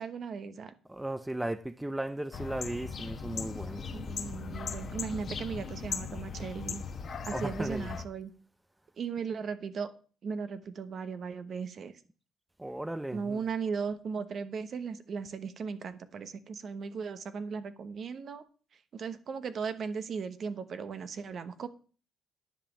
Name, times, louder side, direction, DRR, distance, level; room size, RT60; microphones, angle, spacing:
voice 1, 0.0-0.7 3.9-8.3 9.0-9.9 10.2-11.9 13.1-18.4 18.9-21.7, right 5 dB, 55° right, 1.1 m, -37 dB
voice 2, 0.9-3.9 7.3-7.9 12.6-13.4, right 1 dB, 10° right, 0.6 m, -36 dB
sound 1, 2.3-8.0, left 5 dB, 50° left, 1.2 m, -38 dB
10.0 x 5.2 x 7.3 m
cardioid pair, 90°, 0 cm